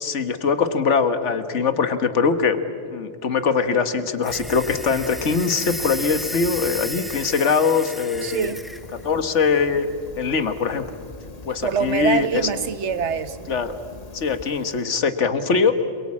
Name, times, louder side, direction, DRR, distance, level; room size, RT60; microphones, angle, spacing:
voice 1, 0.0-2.6 2.9-8.5 9.0-9.9 10.2-10.9 11.4-12.4 13.5-13.8 14.1-15.8, left 5 dB, 75° left, 10 dB, 1.6 m, -22 dB
Fire, 4.2-7.4 7.8-14.8, left 2 dB, 35° left, 1.5 m, -42 dB
sound 1, 4.2-8.8, equal, ahead, 0.5 m, -34 dB
voice 2, 8.2-8.6 11.6-13.5, right 7 dB, 70° right, 13 dB, 1.3 m, -24 dB
27.5 x 22.5 x 8.6 m, 2.3 s
omnidirectional pair, 1.2 m